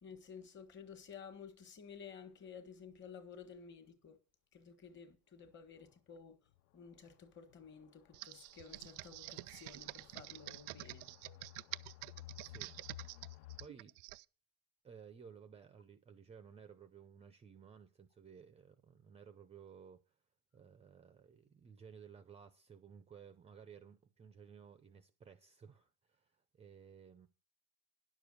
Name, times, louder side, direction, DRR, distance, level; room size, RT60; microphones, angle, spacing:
voice 1, 0.0-4.2 4.5-6.4 6.7-11.1, left 6 dB, 30° left, 1.6 m, -53 dB
sound 1, 5.4-5.5 5.9-6.0 6.5-6.6 7.5-13.7, left 16 dB, 60° left, 0.6 m, -55 dB
Computer keyboard, 8.1-14.2, right 23 dB, 70° right, 0.5 m, -48 dB
voice 2, 12.4-12.8 13.1-13.2 13.6-14.0 14.8-20.1 20.5-27.3, right 7 dB, 15° right, 0.7 m, -57 dB
10.5 x 7.0 x 6.3 m
cardioid pair, 155°, 39 cm